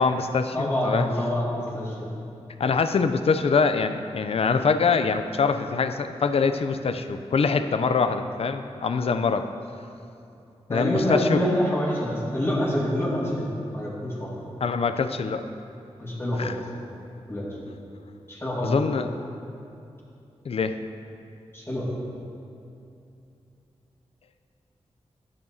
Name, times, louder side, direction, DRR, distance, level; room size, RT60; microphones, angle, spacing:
voice 1, 0.0-1.1 2.6-9.5 10.7-11.5 14.6-15.4 16.4-16.5 18.6-19.1 20.5-20.8, left 5 dB, 60° left, 9 dB, 0.4 m, -24 dB
voice 2, 0.5-1.5 1.7-2.1 10.7-14.3 16.0-16.5 17.3-17.5 18.3-18.8 21.5-21.9, left 1 dB, 20° left, -6 dB, 1.9 m, -26 dB
10.5 x 6.8 x 2.7 m, 2.7 s
cardioid pair, 55°, 11 cm